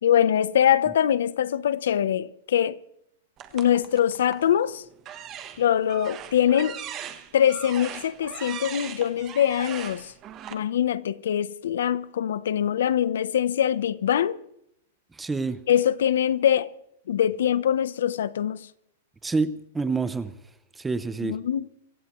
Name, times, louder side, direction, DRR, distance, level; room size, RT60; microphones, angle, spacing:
voice 1, 0.0-2.8 3.5-4.8 5.6-6.8 7.3-10.1 10.5-14.4 15.7-16.7 17.1-18.7 21.2-21.7, left 10 dB, 75° left, 0.7 m, -23 dB
sound 1, 3.4-4.5 5.0-10.5, right 10 dB, 20° right, 1.1 m, -39 dB
voice 2, 15.2-15.6 19.2-20.3 20.8-21.4, right 4 dB, 5° right, 0.5 m, -27 dB
24.0 x 15.5 x 3.1 m
supercardioid pair, 175°, 0 cm